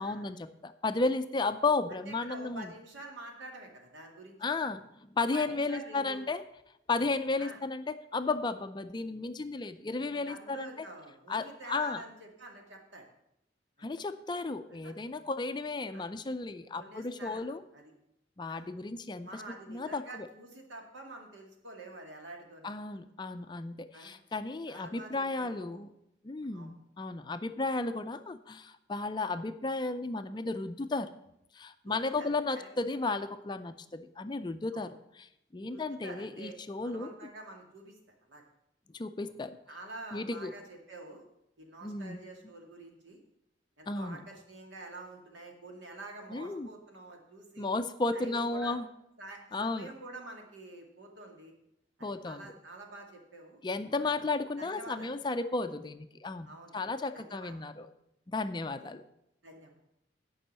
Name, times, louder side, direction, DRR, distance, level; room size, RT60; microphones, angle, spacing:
voice 1, 0.0-2.7 4.4-6.4 6.9-10.7 11.3-12.0 13.8-17.6 18.4-19.4 19.7-20.3 22.6-25.9 26.2-31.1 31.5-37.1 38.9-39.6 40.1-40.5 41.8-42.2 43.9-44.2 46.3-46.7 47.6-48.9 49.5-49.9 52.0-52.5 53.6-57.9 58.3-59.0, left 3 dB, 25° left, 10 dB, 0.4 m, -34 dB
voice 2, 1.9-4.4 5.3-6.2 7.4-7.6 10.3-13.1 13.8-14.0 14.8-14.9 15.9-16.1 16.8-17.8 18.5-18.7 19.2-22.7 23.9-24.2 24.7-25.8 26.5-26.8 31.8-32.3 32.5-32.7 34.7-34.9 35.7-36.6 36.8-38.4 39.2-39.3 39.7-41.2 41.6-43.2 43.8-47.7 48.1-48.8 49.2-51.5 52.0-53.6 54.0-54.3 54.6-55.1 56.5-56.8 57.1-57.5 59.4-59.7, right 2 dB, 85° right, 1 dB, 2.1 m, -47 dB
9.8 x 5.5 x 7.4 m, 0.81 s
head